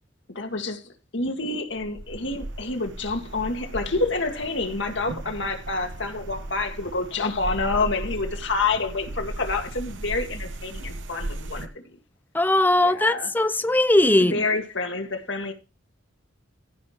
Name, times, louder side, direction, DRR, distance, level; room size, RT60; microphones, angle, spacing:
voice 1, 0.3-0.8 1.1-12.0 12.8-13.3 14.0-15.5, left 3 dB, 70° left, 2.0 m, -28 dB
sound 1, 1.7-11.7, right 2 dB, 75° right, 1.0 m, -36 dB
voice 2, 12.3-14.4, left 1 dB, 10° left, 0.5 m, -19 dB
15.0 x 5.5 x 4.4 m
head